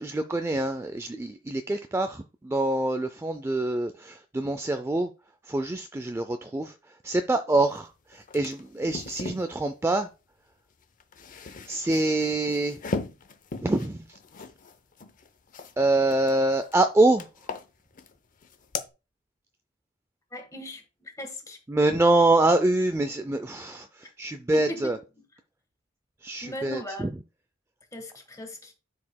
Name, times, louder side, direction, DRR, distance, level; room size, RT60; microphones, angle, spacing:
voice 1, 0.0-5.1 5.5-6.7 7.0-10.1 11.7-12.8 13.6-14.0 15.8-17.3 21.7-25.0 26.2-26.8, right 2 dB, 15° right, 0.4 m, -25 dB
sound 1, 7.8-7.9 8.1-9.5 10.8-15.7 16.1-16.8 17.2-18.1 18.4-18.9, left 4 dB, 45° left, 0.7 m, -38 dB
voice 2, 20.3-21.6 24.0-24.1 24.5-25.0 26.4-27.1 27.9-28.7, left 1 dB, 15° left, 1.5 m, -38 dB
12.0 x 4.8 x 2.2 m
head